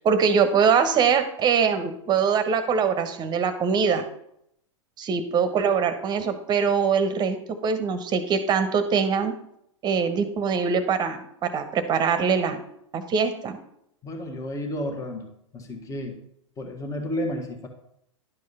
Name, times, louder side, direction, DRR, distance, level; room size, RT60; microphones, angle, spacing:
voice 1, 0.0-4.0 5.0-7.4 7.6-9.3 9.8-12.6 12.9-13.6, right 6 dB, 25° right, 9 dB, 1.1 m, -23 dB
voice 2, 14.0-15.3 15.5-16.2 16.6-17.7, left 1 dB, 20° left, 3 dB, 1.6 m, -31 dB
11.0 x 4.8 x 5.6 m, 0.74 s
figure-of-eight pair, 100°, 16 cm